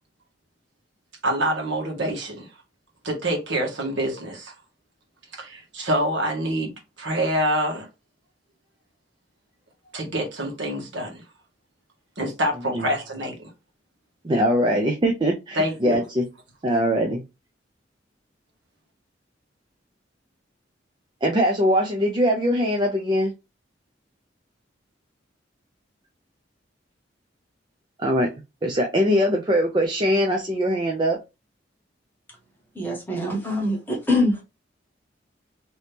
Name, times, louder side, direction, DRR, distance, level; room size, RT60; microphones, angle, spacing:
voice 1, 1.2-2.5 3.0-4.5 5.4-7.9 9.9-11.2 12.2-13.4 15.5-16.0, equal, 75° right, 1.4 m, -26 dB
voice 2, 14.2-16.3 16.6-17.2 21.2-23.3 28.0-28.3 28.6-31.2, equal, 25° right, 0.5 m, -22 dB
voice 3, 32.7-34.4, left 1 dB, 10° left, 1.1 m, -24 dB
3.1 x 2.8 x 3.3 m
head